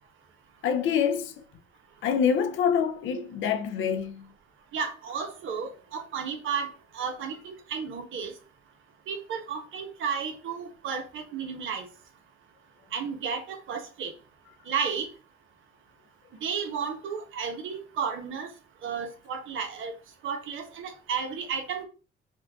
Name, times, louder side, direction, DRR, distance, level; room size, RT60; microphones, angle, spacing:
voice 1, 0.6-1.4 2.0-4.3, left 7 dB, 80° left, 0.6 m, -26 dB
voice 2, 4.7-8.3 9.1-11.8 12.9-14.1 14.7-15.1 16.4-18.5 18.8-19.9 20.2-21.8, right 6 dB, 80° right, 1.2 m, -33 dB
5.3 x 2.5 x 3.6 m
cardioid pair, 90°, 20 cm